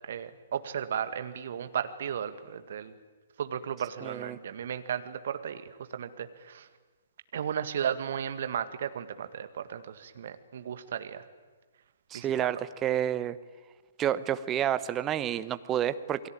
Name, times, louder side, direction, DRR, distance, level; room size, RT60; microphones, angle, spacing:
voice 1, 0.1-2.9 3.4-6.7 7.3-11.2 12.1-12.6, right 8 dB, 50° right, 10 dB, 1.8 m, -35 dB
voice 2, 4.0-4.4 12.1-13.4 14.0-16.3, right 10 dB, 20° right, 13 dB, 1.0 m, -29 dB
28.5 x 21.5 x 8.9 m, 1.4 s
figure-of-eight pair, 120°, 0 cm